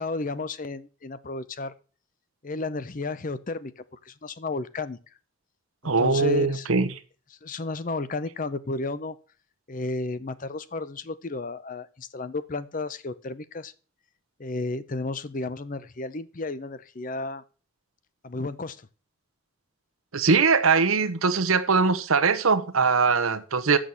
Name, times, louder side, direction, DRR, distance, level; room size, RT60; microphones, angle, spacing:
voice 1, 0.0-1.7 2.4-5.0 5.8-6.7 7.4-9.2 9.7-13.7 14.4-17.4 18.2-18.9, left 3 dB, 40° left, 0.6 m, -33 dB
voice 2, 5.8-6.9 20.1-23.8, right 4 dB, 90° right, 0.9 m, -21 dB
7.1 x 6.3 x 7.7 m
head